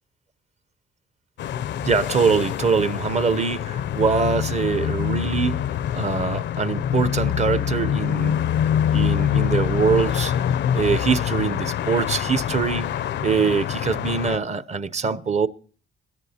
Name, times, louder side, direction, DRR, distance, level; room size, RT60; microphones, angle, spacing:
sound 1, 1.4-14.4, left 9 dB, 65° left, 0.5 m, -25 dB
voice 1, 1.8-8.4 8.9-15.5, right 5 dB, 35° right, 0.7 m, -23 dB
21.5 x 10.5 x 2.8 m
cardioid pair, 90°, 20 cm